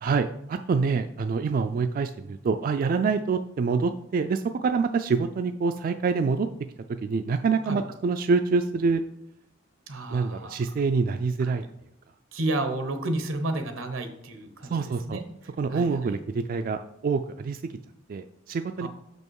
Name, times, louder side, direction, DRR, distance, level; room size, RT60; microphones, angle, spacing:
voice 1, 0.0-6.5 7.0-9.0 10.1-11.6 14.6-15.2 15.6-17.7 18.1-18.9, right 4 dB, 45° right, 8 dB, 0.3 m, -26 dB
voice 2, 9.9-10.6 11.4-11.6 12.3-14.7 15.1-15.2 15.7-15.9 18.8-18.9, right 2 dB, 90° right, 7 dB, 1.0 m, -31 dB
6.2 x 5.4 x 4.7 m, 0.77 s
head